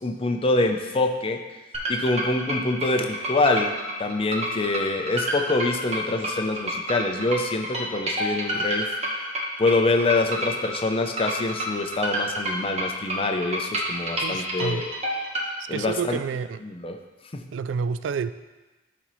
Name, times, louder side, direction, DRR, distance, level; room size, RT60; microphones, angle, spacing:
voice 1, 0.0-1.4 1.9-3.7 4.0-8.9 9.2-9.3 9.6-14.9 15.7-16.2 16.6-17.0 17.3-17.4, left 2 dB, 30° left, 5 dB, 0.6 m, -25 dB
sound 1, 1.7-15.5, equal, 35° right, 1.2 m, -29 dB
voice 2, 14.1-14.9 15.7-16.6 17.5-18.3, right 6 dB, 90° right, 13 dB, 0.3 m, -29 dB
12.0 x 4.3 x 3.1 m, 1.2 s
head